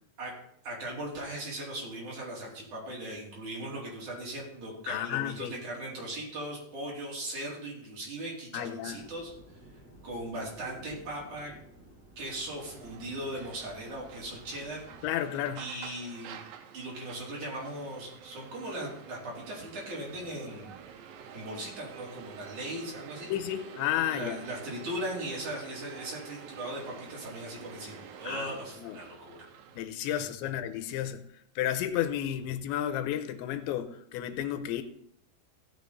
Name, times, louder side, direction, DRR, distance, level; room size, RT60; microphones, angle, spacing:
voice 1, 0.6-9.3 10.0-11.5 12.2-15.0 15.6-16.4 16.7-20.7 21.3-23.3 24.1-29.5, right 1 dB, 45° right, -4 dB, 4.1 m, -38 dB
voice 2, 4.9-5.6 8.5-9.1 15.0-15.6 23.3-24.5 28.2-28.5 28.8-29.0 29.8-31.3 31.6-34.8, left 11 dB, 85° left, 9 dB, 3.0 m, -32 dB
sound 1, 8.9-15.1, right 1 dB, 25° right, 2.8 m, -53 dB
sound 2, 12.2-29.8, right 8 dB, 80° right, 3.2 m, -49 dB
16.0 x 7.0 x 4.0 m, 0.71 s
omnidirectional pair, 5.3 m